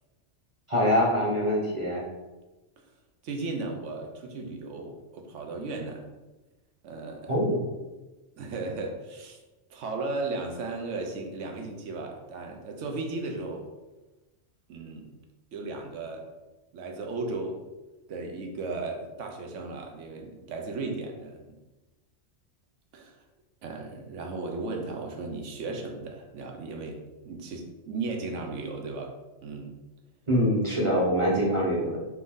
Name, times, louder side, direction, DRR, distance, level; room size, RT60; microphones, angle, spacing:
voice 1, 0.7-2.0 7.3-7.6 30.3-32.0, equal, 30° right, -4 dB, 0.8 m, -24 dB
voice 2, 3.2-6.1 6.8-7.4 8.4-9.4 9.7-13.7 14.7-15.1 15.5-16.3 16.7-17.6 18.1-21.4 22.9-23.2 23.6-29.1 29.4-29.8, right 3 dB, 90° right, 3 dB, 1.0 m, -35 dB
4.4 x 2.6 x 3.6 m, 1.1 s
omnidirectional pair, 1.2 m